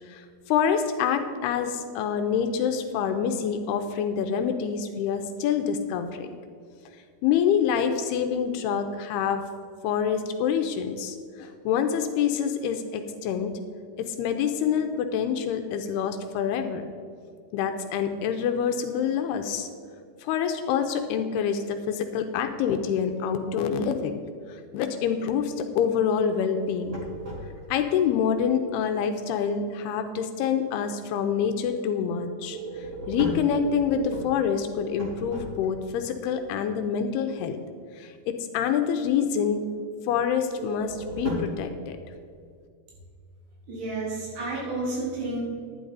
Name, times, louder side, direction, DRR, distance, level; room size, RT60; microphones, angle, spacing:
voice 1, 0.1-6.3 7.2-9.4 9.8-13.5 14.0-16.9 17.5-19.7 20.2-24.2 24.5-27.0 27.7-37.6 38.0-39.7 40.1-42.0, left 7 dB, 80° left, 7 dB, 2.5 m, -26 dB
sound 1, 26.6-27.9 32.4-36.0 40.5-41.7, right 1 dB, 60° right, 0.7 m, -35 dB
voice 2, 43.7-45.4, right 2 dB, 80° right, -6 dB, 5.4 m, -31 dB
10.5 x 10.5 x 3.9 m, 2.2 s
omnidirectional pair, 4.8 m